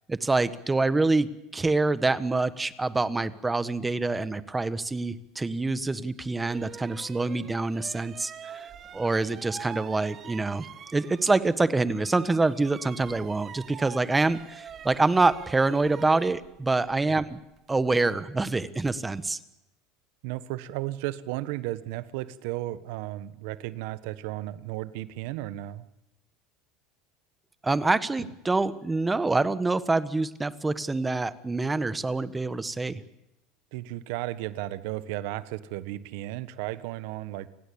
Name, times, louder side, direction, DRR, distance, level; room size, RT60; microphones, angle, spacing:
voice 1, 0.1-8.7 8.9-10.7 10.9-17.4 17.7-19.4 27.6-33.0, right 3 dB, 10° right, 14 dB, 1.3 m, -26 dB
sound 1, 5.8-5.9 6.4-11.6 11.9-18.0, right 8 dB, 35° right, 1.5 m, -45 dB
voice 2, 20.2-25.9 33.7-37.5, right 16 dB, 70° right, 14 dB, 1.4 m, -34 dB
29.5 x 17.0 x 8.7 m, 0.92 s
supercardioid pair, 125°, 0 cm